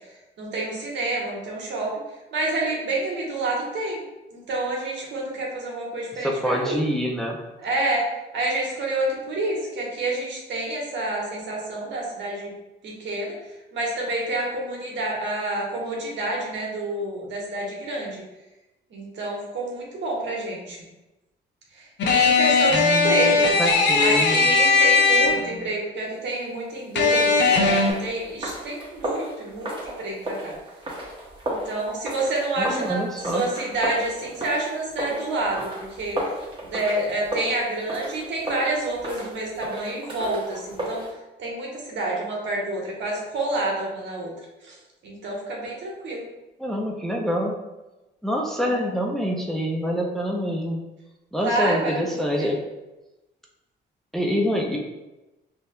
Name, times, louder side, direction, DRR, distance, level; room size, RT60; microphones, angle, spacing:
voice 1, 0.4-1.9 2.3-4.0 4.3-6.8 7.6-12.5 12.8-13.3 13.7-18.2 18.9-20.8 21.7-23.5 24.0-30.5 31.4-36.2 36.6-41.0 41.4-44.3 44.6-44.8 45.0-46.3 48.6-48.8 51.3-52.1 52.4-52.5, right 2 dB, 65° right, -3 dB, 1.2 m, -28 dB
voice 2, 6.2-7.4 22.7-24.5 32.6-33.4 46.6-47.5 48.2-50.8 51.3-52.6 54.1-54.8, equal, ahead, -1 dB, 0.6 m, -26 dB
sound 1, 22.0-25.7 27.0-27.9, left 4 dB, 65° left, 0.7 m, -19 dB
sound 2, 27.0-41.1, right 1 dB, 25° right, 1.2 m, -34 dB
5.3 x 2.8 x 2.2 m, 1.0 s
cardioid pair, 90°, 20 cm